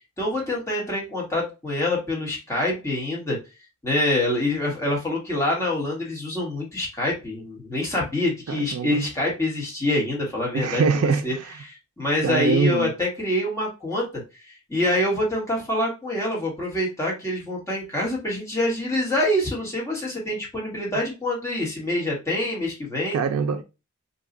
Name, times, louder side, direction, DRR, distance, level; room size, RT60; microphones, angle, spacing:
voice 1, 0.2-3.4 3.8-11.3 11.6-14.2 14.7-23.2, left 1 dB, 15° left, 1.3 m, -26 dB
voice 2, 8.5-9.1 10.5-11.4 12.2-12.9 23.1-23.6, right 5 dB, 80° right, 0.4 m, -23 dB
2.7 x 2.3 x 3.6 m
head